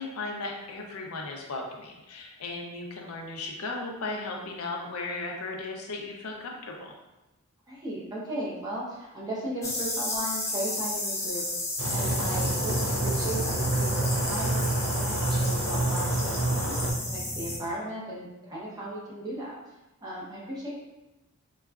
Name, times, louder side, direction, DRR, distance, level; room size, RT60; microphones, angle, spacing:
voice 1, 0.0-6.9, left 3 dB, 90° left, 1 dB, 0.5 m, -36 dB
voice 2, 7.7-11.4 11.9-19.5 20.0-20.7, right 1 dB, 20° right, -7 dB, 0.8 m, -36 dB
sound 1, 9.6-17.6, left 1 dB, 15° left, 0.5 m, -32 dB
sound 2, 11.8-16.9, right 2 dB, 60° right, 0.5 m, -28 dB
3.9 x 2.3 x 2.3 m, 1.0 s
head